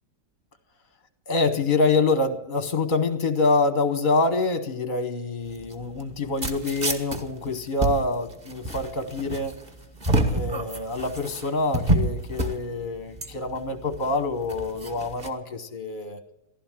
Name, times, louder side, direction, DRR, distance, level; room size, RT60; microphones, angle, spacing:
voice 1, 1.3-9.5 10.3-16.2, left 3 dB, 40° left, 8 dB, 0.8 m, -26 dB
sound 1, 5.4-15.3, right 1 dB, 25° right, 1.2 m, -29 dB
15.5 x 11.5 x 7.4 m, 0.89 s
omnidirectional pair, 2.1 m